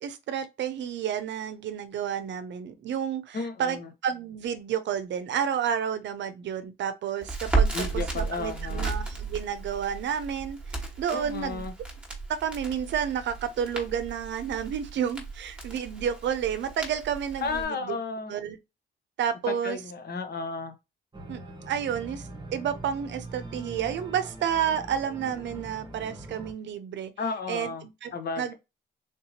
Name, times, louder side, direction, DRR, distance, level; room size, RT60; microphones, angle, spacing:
voice 1, 0.0-11.6 12.3-18.0 18.3-18.6 19.2-19.8 21.3-21.4 21.7-27.1 27.5-28.5, right 8 dB, 65° right, 0.6 m, -30 dB
voice 2, 3.3-3.9 7.7-8.9 11.1-11.7 17.4-18.4 19.5-20.7 27.2-27.9 28.1-28.5, left 4 dB, 55° left, 0.9 m, -33 dB
Crackle, 7.2-17.6, right 4 dB, 5° right, 1.3 m, -33 dB
Organ, 21.1-26.5, right 1 dB, 25° right, 0.8 m, -42 dB
3.5 x 2.8 x 2.7 m
cardioid pair, 90°, 20 cm